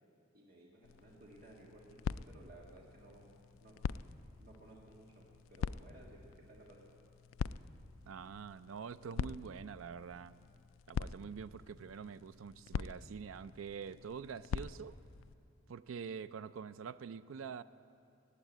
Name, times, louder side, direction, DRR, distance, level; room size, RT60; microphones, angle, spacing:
voice 1, 0.3-3.8 4.4-6.8, right 1 dB, 50° right, -3 dB, 1.6 m, -58 dB
sound 1, 0.8-15.3, left 6 dB, 80° left, 0.3 m, -44 dB
voice 2, 8.1-10.4 10.9-15.0 15.7-17.6, right 6 dB, 85° right, 14 dB, 0.4 m, -46 dB
15.5 x 8.5 x 9.1 m, 2.6 s
head